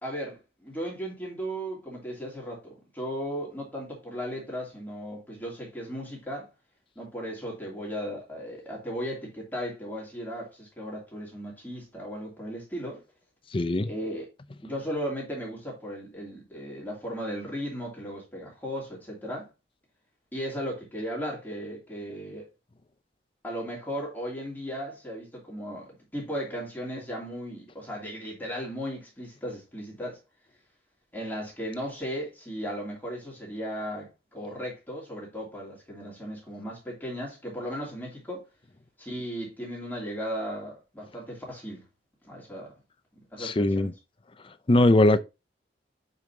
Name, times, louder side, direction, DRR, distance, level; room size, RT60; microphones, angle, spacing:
voice 1, 0.0-6.5 7.0-13.0 13.8-14.3 14.6-19.5 20.3-22.5 23.4-30.2 31.1-38.4 39.0-41.8 42.2-42.7 43.3-43.9, equal, 10° left, 2.7 m, -36 dB
voice 2, 13.5-13.9 43.4-43.9 44.7-45.2, left 2 dB, 30° left, 0.5 m, -20 dB
7.9 x 5.3 x 2.7 m
head